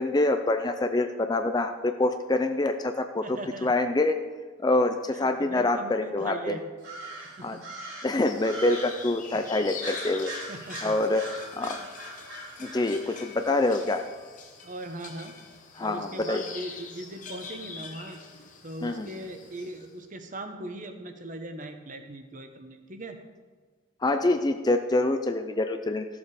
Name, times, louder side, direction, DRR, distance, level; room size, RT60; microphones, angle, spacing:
voice 1, 0.0-3.3 3.6-4.2 4.6-6.6 7.4-7.6 8.0-10.3 10.8-11.2 11.6-11.8 12.6-14.0 15.8-16.4 18.8-19.1 24.0-26.1, left 2 dB, 20° left, 7 dB, 0.4 m, -26 dB
voice 2, 3.2-3.7 5.1-6.6 7.4-7.7 10.5-11.5 11.8-11.9 14.6-15.3 15.8-18.2 18.6-23.2, right 1 dB, 35° right, 6 dB, 0.9 m, -39 dB
sound 1, 6.8-9.1 9.8-13.8, right 1 dB, 65° right, 3.3 m, -41 dB
sound 2, 8.2-19.9, left 5 dB, 35° left, 1.0 m, -44 dB
14.0 x 7.2 x 4.9 m, 1.5 s
head